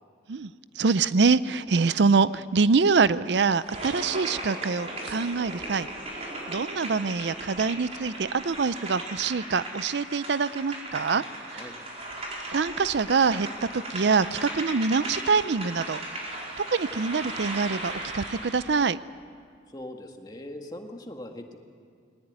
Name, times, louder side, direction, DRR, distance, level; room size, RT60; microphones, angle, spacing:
voice 1, 0.8-5.9 6.1-11.2 11.5-11.6 12.4-16.0 16.3-16.4 16.7-19.0, right 4 dB, 70° right, 16 dB, 0.5 m, -25 dB
sound 1, 3.6-18.7, right 1 dB, 35° right, 4.4 m, -37 dB
voice 2, 19.7-21.6, left 1 dB, 20° left, 3 dB, 1.8 m, -40 dB
21.0 x 19.5 x 9.4 m, 2.3 s
head